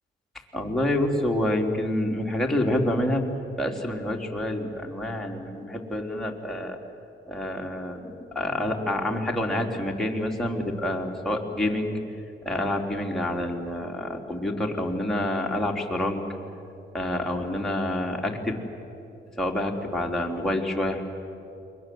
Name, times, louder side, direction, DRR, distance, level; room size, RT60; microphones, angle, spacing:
voice 1, 0.5-3.3 3.6-6.8 7.3-12.0 12.5-16.2 16.9-18.6 19.4-21.0, left 1 dB, ahead, -1 dB, 3.5 m, -27 dB
29.0 x 22.5 x 7.8 m, 2.8 s
cardioid pair, 90°, 20 cm